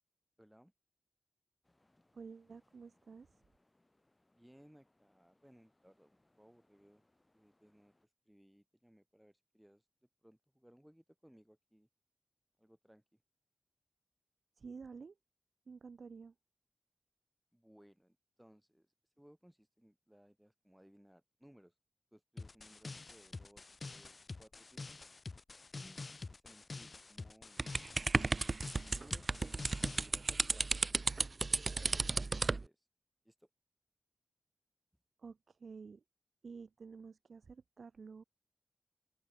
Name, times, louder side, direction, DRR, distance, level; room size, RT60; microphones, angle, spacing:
voice 1, 0.4-0.7 4.3-7.0 7.3-7.9 8.3-9.8 10.2-11.9 12.6-13.2 17.5-18.9 19.2-21.7 22.1-25.0 25.7-26.0 26.3-27.6 28.4-31.0 31.5-32.9 33.2-33.5, equal, 5° right, 5.5 m, -64 dB
sound 1, 1.6-8.1, left 1 dB, 25° left, 7.7 m, -76 dB
voice 2, 2.1-3.3 14.6-15.2 15.7-16.3 35.2-36.0 36.4-38.2, right 5 dB, 75° right, 0.7 m, -51 dB
sound 2, 22.4-30.1, left 3 dB, 50° left, 0.4 m, -48 dB
sound 3, 27.6-32.6, right 3 dB, 50° right, 0.3 m, -33 dB
cardioid pair, 55°, 0 cm